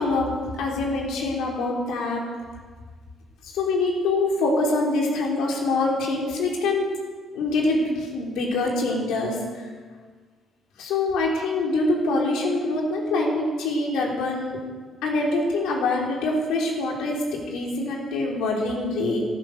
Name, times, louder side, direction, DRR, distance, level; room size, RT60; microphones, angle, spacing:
voice 1, 0.0-2.2 3.4-6.9 7.3-9.6 10.8-14.6 15.0-19.2, left 2 dB, 90° left, -1 dB, 3.7 m, -25 dB
14.0 x 14.0 x 6.6 m, 1.5 s
cardioid pair, 90°, 0 cm